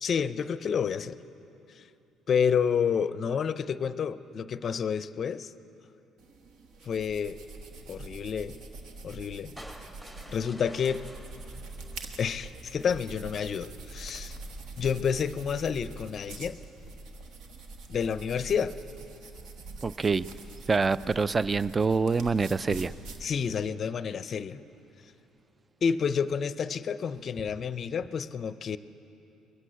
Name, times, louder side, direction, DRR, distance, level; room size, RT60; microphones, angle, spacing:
voice 1, 0.0-1.2 1.8-1.9 2.3-5.5 6.8-7.4 7.9-8.5 9.0-9.5 10.3-11.0 12.2-14.4 14.8-16.6 17.9-18.7 23.2-24.6 25.8-28.8, left 7 dB, 50° left, 15 dB, 0.5 m, -29 dB
sound 1, 6.2-23.7, right 3 dB, 75° right, 1.2 m, -45 dB
sound 2, 9.6-12.8, equal, 10° right, 1.5 m, -49 dB
voice 2, 19.8-20.3 20.7-22.9, right 4 dB, 30° right, 18 dB, 0.3 m, -26 dB
21.5 x 8.3 x 7.9 m, 2.8 s
supercardioid pair, 75°, 0 cm